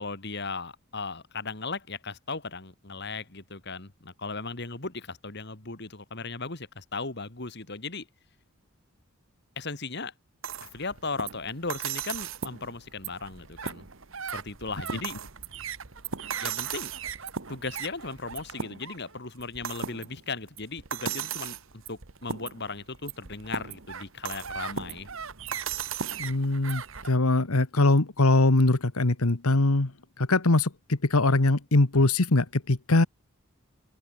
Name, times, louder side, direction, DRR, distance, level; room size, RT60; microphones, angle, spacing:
voice 1, 0.0-8.0 9.6-10.1 10.7-13.8 14.3-15.2 16.4-16.9 17.5-21.6 21.9-25.1, left 4 dB, 50° left, 2.4 m, -37 dB
sound 1, 10.4-27.1, right 7 dB, 65° right, 1.5 m, -37 dB
voice 2, 26.2-29.9 30.2-33.1, left 2 dB, 85° left, 1.5 m, -22 dB
open air
head